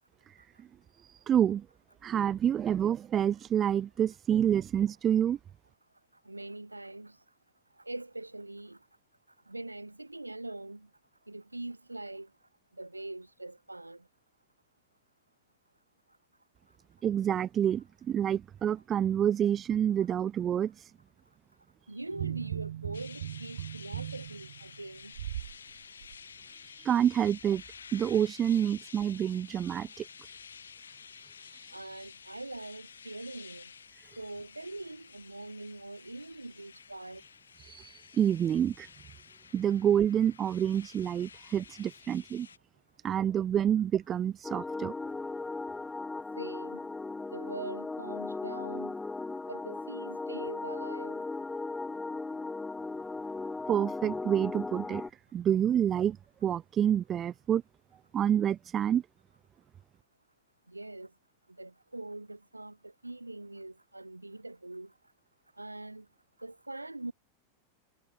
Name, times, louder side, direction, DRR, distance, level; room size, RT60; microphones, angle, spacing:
voice 1, 0.3-0.7 1.0-1.7 2.0-5.4 17.0-20.9 26.5-27.6 27.9-30.1 31.4-31.7 37.6-38.9 39.5-42.5 43.0-44.9 53.7-55.0 55.3-56.2 56.4-57.6 58.1-59.0, right 9 dB, 25° right, 1.0 m, -28 dB
voice 2, 6.2-7.2 7.8-8.8 9.5-10.9 11.3-12.3 12.8-14.0 21.9-25.1 31.7-33.7 34.2-37.2 46.4-46.8 47.3-48.9 49.5-51.2 60.7-61.1 61.6-64.9 65.6-66.0 66.4-67.1, right 2 dB, 85° right, 2.6 m, -43 dB
sound 1, 22.1-25.6 26.0-26.2, right 12 dB, 60° right, 2.5 m, -38 dB
sound 2, 22.9-42.6, left 6 dB, 70° left, 6.8 m, -51 dB
sound 3, 44.4-55.1, left 3 dB, 10° left, 2.0 m, -37 dB
figure-of-eight pair, 90°, 0 cm